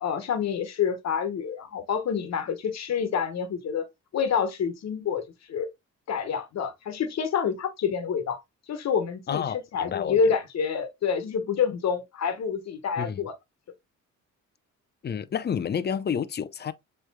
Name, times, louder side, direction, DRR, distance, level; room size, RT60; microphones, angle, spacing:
voice 1, 0.0-3.8 4.1-5.2 5.5-5.7 6.1-8.4 8.7-13.3, left 6 dB, 60° left, 1.3 m, -27 dB
voice 2, 9.3-10.2 13.0-13.2 15.0-16.7, left 7 dB, 35° left, 0.6 m, -30 dB
7.3 x 3.2 x 2.2 m
cardioid pair, 90°, 30 cm